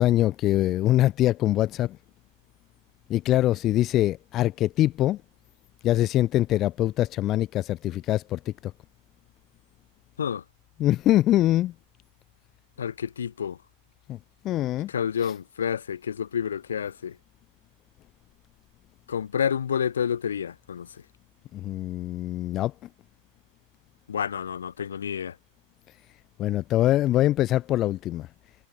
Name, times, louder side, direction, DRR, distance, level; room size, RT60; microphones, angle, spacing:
voice 1, 0.0-2.0 3.1-5.2 5.8-8.5 10.8-11.7 14.1-14.2 14.4-14.9 15.2-15.3 21.5-22.7 26.4-28.3, left 14 dB, 35° left, 1.5 m, -23 dB
voice 2, 12.8-13.6 14.9-17.1 19.1-20.9 24.1-25.3, left 8 dB, 70° left, 5.1 m, -29 dB
figure-of-eight pair, 90°, 0 cm